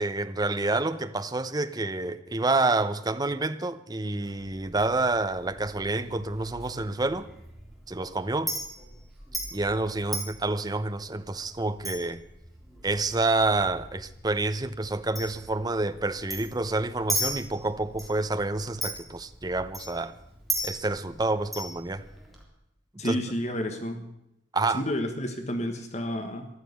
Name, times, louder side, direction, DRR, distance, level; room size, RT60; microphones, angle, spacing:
voice 1, 0.0-7.3 7.9-8.5 9.5-12.2 12.8-20.1 20.6-22.0 23.0-23.2 24.5-24.8, right 2 dB, 20° right, 0.7 m, -28 dB
Chink clink, 4.2-22.4, right 1 dB, ahead, 3.4 m, -38 dB
voice 2, 23.0-24.1 24.7-26.5, equal, 35° left, 1.4 m, -30 dB
14.0 x 12.0 x 8.1 m
head